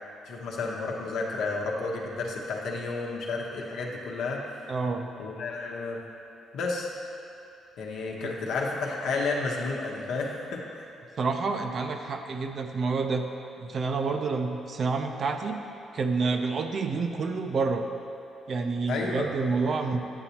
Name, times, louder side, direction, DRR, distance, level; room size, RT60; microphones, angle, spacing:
voice 1, 0.3-4.4 5.2-6.0 6.5-6.9 7.8-10.9 18.9-19.3, left 3 dB, 80° left, -1 dB, 0.9 m, -31 dB
voice 2, 4.7-5.1 8.2-8.3 11.2-13.3 13.6-15.5 15.9-17.8 18.5-20.0, right 4 dB, 50° right, 5 dB, 0.5 m, -28 dB
8.8 x 6.9 x 2.9 m, 2.8 s
cardioid pair, 90°, 0 cm